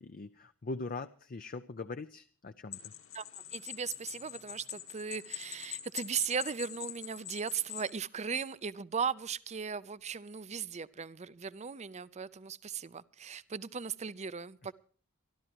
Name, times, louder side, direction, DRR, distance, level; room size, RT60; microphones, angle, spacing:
voice 1, 0.0-2.9, left 3 dB, 40° left, 10 dB, 0.5 m, -41 dB
sound 1, 2.7-7.9, left 13 dB, 65° left, 2.0 m, -44 dB
voice 2, 3.5-14.7, right 6 dB, 30° right, 17 dB, 0.6 m, -37 dB
26.0 x 12.0 x 3.0 m, 0.43 s
head